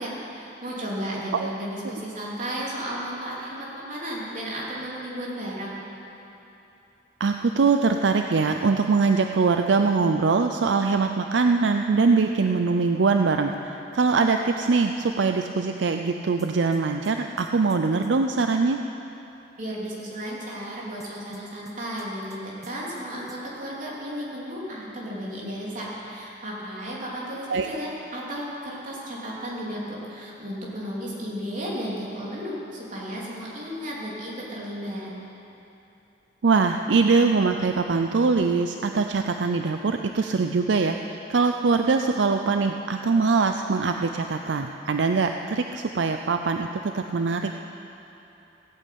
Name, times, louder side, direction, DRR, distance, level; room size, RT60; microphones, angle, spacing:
voice 1, 0.0-5.8 19.6-35.1, equal, 45° right, -6 dB, 3.5 m, -34 dB
voice 2, 7.2-18.8 27.5-27.7 36.4-47.6, right 4 dB, 80° right, 5 dB, 0.5 m, -22 dB
sound 1, 16.4-18.1 21.0-22.4 22.6-23.0 23.3-23.4, right 1 dB, 20° right, 1.2 m, -48 dB
16.5 x 8.6 x 8.5 m, 2.9 s
head